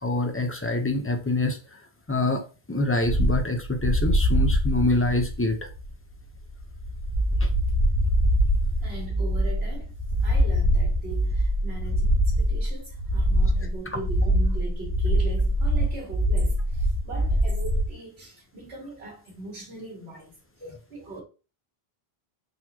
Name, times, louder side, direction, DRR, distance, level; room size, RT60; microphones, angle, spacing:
voice 1, 0.0-1.6 2.1-2.4 2.7-5.7 7.4-7.5 20.6-20.8, left 2 dB, 20° left, 0.4 m, -25 dB
sound 1, 3.0-17.9, equal, 45° left, 1.4 m, -25 dB
sound 2, 7.1-7.8 8.1-8.8 9.1-9.7 10.1-10.8 11.1-11.7 12.1-12.8 13.1-13.7 14.1-14.8 15.1-15.8 16.1-16.8 17.1-17.8, right 1 dB, 35° right, 0.4 m, -25 dB
voice 2, 8.8-21.2, right 2 dB, 90° right, 1.7 m, -40 dB
4.0 x 2.9 x 2.8 m
omnidirectional pair, 1.0 m